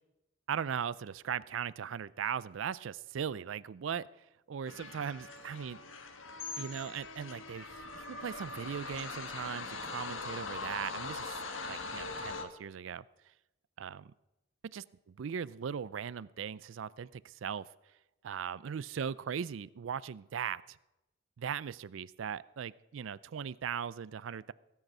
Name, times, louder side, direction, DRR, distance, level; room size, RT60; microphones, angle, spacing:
voice 1, 0.5-4.1 4.5-5.8 6.6-11.4 11.7-13.0 13.8-14.1 14.7-17.7 18.2-20.8 21.4-24.5, right 7 dB, 75° right, 19 dB, 0.4 m, -39 dB
sound 1, 4.6-12.4, left 3 dB, 85° left, 1.3 m, -42 dB
17.5 x 8.0 x 6.0 m, 0.95 s
head